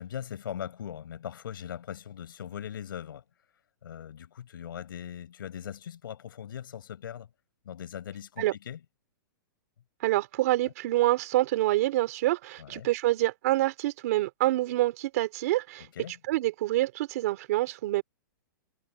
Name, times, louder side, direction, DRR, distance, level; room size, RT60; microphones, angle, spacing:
voice 1, 0.0-3.2 3.8-7.3 7.6-8.8 12.6-12.9 15.9-16.2, left 9 dB, 85° left, 5.1 m, -40 dB
voice 2, 10.0-15.9 16.3-18.0, right 17 dB, 45° right, 2.6 m, -26 dB
hypercardioid pair, 170°, 11 cm